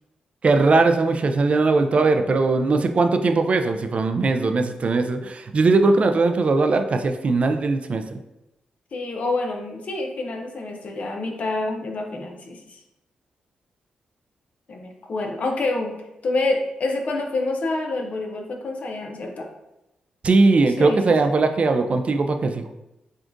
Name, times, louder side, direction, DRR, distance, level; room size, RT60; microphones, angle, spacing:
voice 1, 0.4-8.2 20.2-22.7, right 3 dB, 50° right, 6 dB, 0.4 m, -20 dB
voice 2, 8.9-12.8 14.7-16.0 16.2-19.5 20.8-21.2, left 2 dB, 60° left, 2 dB, 0.7 m, -27 dB
6.2 x 2.4 x 2.6 m, 0.91 s
cardioid pair, 55°, 3 cm